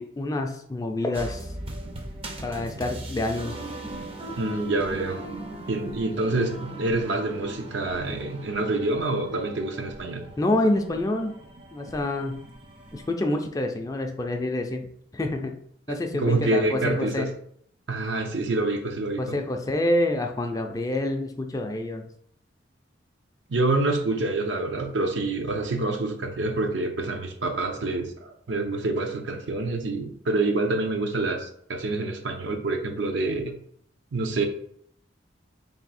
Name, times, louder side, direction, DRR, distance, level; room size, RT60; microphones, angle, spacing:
voice 1, 0.0-1.5 2.4-3.6 10.4-11.3 11.7-12.5 12.9-15.6 15.9-17.3 19.2-22.1, left 1 dB, 20° left, 4 dB, 0.4 m, -27 dB
sound 1, 1.1-13.1, right 1 dB, 30° right, 0.5 m, -39 dB
voice 2, 4.4-5.3 5.7-10.3 15.9-17.3 17.9-19.4 23.5-33.5 34.1-34.5, right 2 dB, 75° right, 4 dB, 0.6 m, -27 dB
3.4 x 2.6 x 4.1 m, 0.64 s
head